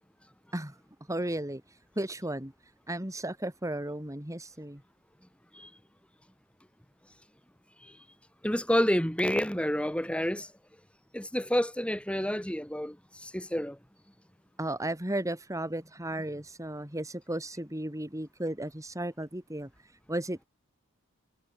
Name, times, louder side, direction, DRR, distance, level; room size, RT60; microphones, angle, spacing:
voice 1, 1.1-2.5 2.9-4.8 14.6-20.4, right 1 dB, 15° right, 3.4 m, -35 dB
voice 2, 8.4-10.5 11.1-13.8, equal, 5° left, 4.8 m, -29 dB
head